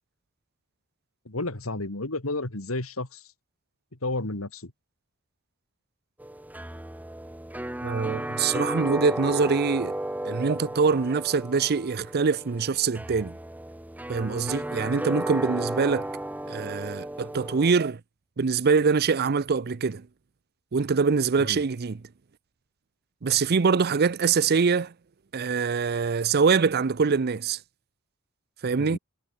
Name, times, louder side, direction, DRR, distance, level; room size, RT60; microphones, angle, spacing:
voice 1, 1.3-3.2 4.0-4.7 21.4-21.6 28.8-29.0, left 2 dB, 85° left, 2.7 m, -32 dB
sound 1, 6.2-17.7, right 1 dB, 10° right, 1.1 m, -34 dB
voice 2, 7.8-9.9 10.2-13.4 14.1-16.1 16.5-18.0 18.4-20.1 20.7-22.0 23.2-24.9 25.3-27.6 28.6-29.0, right 5 dB, 50° right, 0.6 m, -24 dB
head